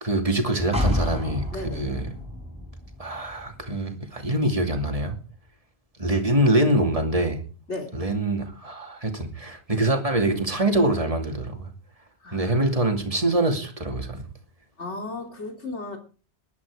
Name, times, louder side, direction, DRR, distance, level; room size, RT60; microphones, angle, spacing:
voice 1, 0.0-1.5 1.7-2.0 3.0-5.2 6.0-7.4 7.9-11.7 12.3-14.2, right 1 dB, 30° right, 2.7 m, -24 dB
sound 1, 0.7-4.5 4.8-4.9, left 1 dB, 5° right, 5.3 m, -30 dB
voice 2, 1.5-1.9 7.7-7.9 12.2-13.0 14.8-16.0, left 2 dB, 75° left, 3.3 m, -35 dB
19.5 x 11.5 x 4.9 m
omnidirectional pair, 1.2 m